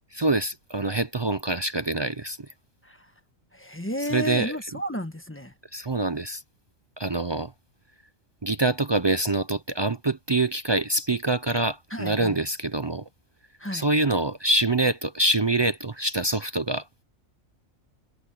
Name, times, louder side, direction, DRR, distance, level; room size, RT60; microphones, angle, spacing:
voice 1, 0.1-2.4 4.1-4.5 5.7-6.4 7.0-7.5 8.4-13.0 13.7-17.0, right 2 dB, 45° right, 0.3 m, -25 dB
voice 2, 3.5-5.5 11.9-12.4 13.6-13.9, equal, 10° left, 1.3 m, -32 dB
omnidirectional pair, 1.4 m